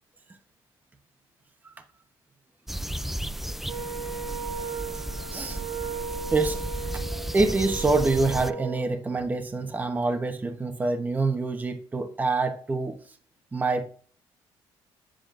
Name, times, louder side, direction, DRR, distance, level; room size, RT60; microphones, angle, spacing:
sound 1, 2.7-8.5, right 1 dB, 5° right, 0.3 m, -34 dB
Wind instrument woodwind instrument, 3.6-8.9, right 6 dB, 80° right, 3.0 m, -36 dB
voice 1, 7.3-13.0 13.5-13.8, right 3 dB, 20° right, 5 dB, 1.0 m, -26 dB
8.4 x 7.6 x 2.5 m, 0.43 s
cardioid pair, 115°, 9 cm